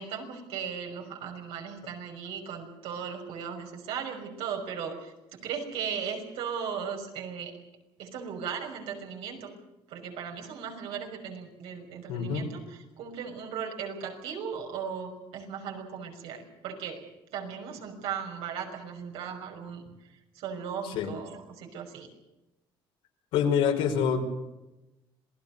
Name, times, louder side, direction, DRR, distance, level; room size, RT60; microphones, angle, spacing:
voice 1, 0.0-7.5 8.0-9.5 9.9-19.8 20.3-22.1, right 7 dB, 85° right, 3 dB, 5.7 m, -37 dB
voice 2, 12.1-12.5 20.9-21.1 23.3-24.2, left 7 dB, 90° left, 2 dB, 4.8 m, -26 dB
27.0 x 18.5 x 6.8 m, 0.98 s
cardioid pair, 130°, 9 cm